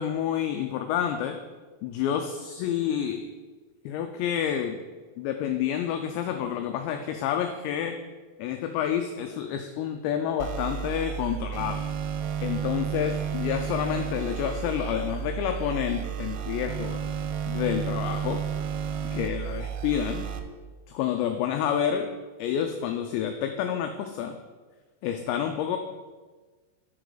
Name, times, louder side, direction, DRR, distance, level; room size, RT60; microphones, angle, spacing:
voice 1, 0.0-1.4 1.8-3.3 3.9-4.8 5.2-8.0 8.4-11.9 12.4-17.0 17.5-18.4 19.0-20.3 20.9-22.1 22.4-24.4 25.0-25.8, left 9 dB, 85° left, 5 dB, 2.5 m, -29 dB
sound 1, 10.4-20.4, right 8 dB, 85° right, 2.9 m, -32 dB
11.0 x 6.0 x 3.9 m, 1.3 s
omnidirectional pair, 5.5 m